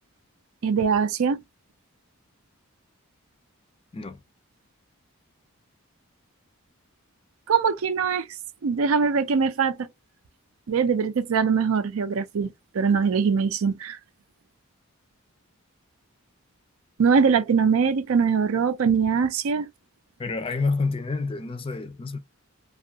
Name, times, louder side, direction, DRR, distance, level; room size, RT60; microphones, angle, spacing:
voice 1, 0.6-1.4 7.5-8.2 8.6-9.9 10.7-14.0 17.0-19.7, right 6 dB, 75° right, 0.4 m, -22 dB
voice 2, 20.2-22.2, left 3 dB, 25° left, 0.4 m, -28 dB
2.6 x 2.4 x 2.7 m
head